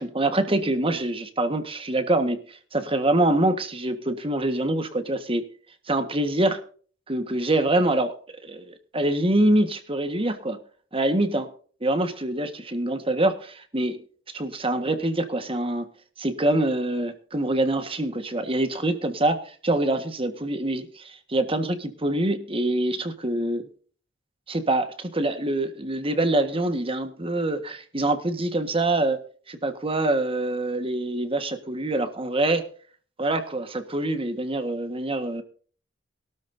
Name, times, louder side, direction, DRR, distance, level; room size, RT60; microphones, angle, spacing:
voice 1, 0.0-5.4 5.9-6.6 7.1-8.1 8.4-10.6 10.9-11.5 11.8-14.0 14.3-15.8 16.2-23.6 24.5-29.2 29.5-32.6 33.2-35.4, right 1 dB, 30° right, 8 dB, 1.6 m, -25 dB
22.5 x 12.5 x 2.7 m, 0.43 s
head